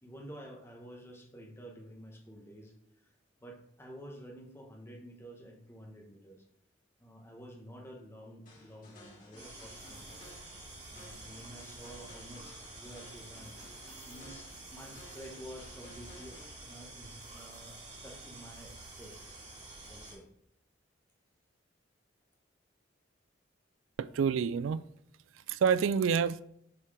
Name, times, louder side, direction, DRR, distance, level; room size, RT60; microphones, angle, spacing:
voice 1, 0.0-3.1 3.4-6.4 7.0-10.2 10.9-13.6 14.0-19.2 19.8-20.2, equal, 15° left, 1 dB, 1.2 m, -50 dB
sound 1, 8.5-16.5, left 1 dB, 45° left, 2.6 m, -55 dB
sound 2, 9.4-20.2, right 2 dB, 35° right, 2.5 m, -49 dB
voice 2, 24.0-24.8 25.5-26.4, right 6 dB, 90° right, 17 dB, 0.3 m, -28 dB
7.1 x 4.6 x 5.0 m, 0.73 s
head